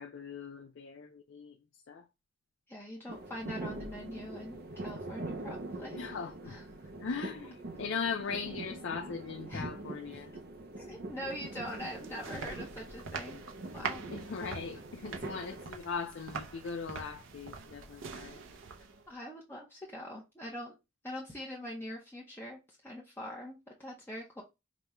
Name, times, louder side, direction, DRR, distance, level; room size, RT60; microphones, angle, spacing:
voice 1, 0.0-1.6 1.9-2.0 5.9-6.6 7.0-10.3 14.1-18.4, left 5 dB, 70° left, 0.4 m, -39 dB
voice 2, 2.7-6.2 6.4-6.6 9.5-9.7 10.1-10.3 10.8-13.5 13.7-14.0 19.1-20.8 21.0-24.4, left 1 dB, 10° left, 0.7 m, -43 dB
sound 1, 3.1-15.7, right 2 dB, 50° right, 0.6 m, -44 dB
sound 2, 11.3-19.1, right 5 dB, 85° right, 0.7 m, -44 dB
5.0 x 2.2 x 3.0 m
head